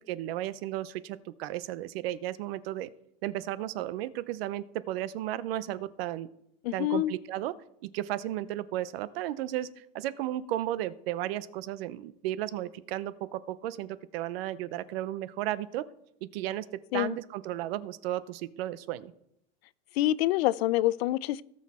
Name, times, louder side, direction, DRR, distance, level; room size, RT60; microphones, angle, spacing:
voice 1, 0.1-2.9 3.2-6.3 6.7-7.5 7.8-15.8 16.2-16.7 16.9-19.1, right 13 dB, 75° right, 17 dB, 0.7 m, -34 dB
voice 2, 6.6-7.1 16.9-17.1 20.0-21.4, left 15 dB, 85° left, 20 dB, 0.5 m, -26 dB
17.5 x 6.4 x 4.3 m, 0.78 s
supercardioid pair, 170°, 30 cm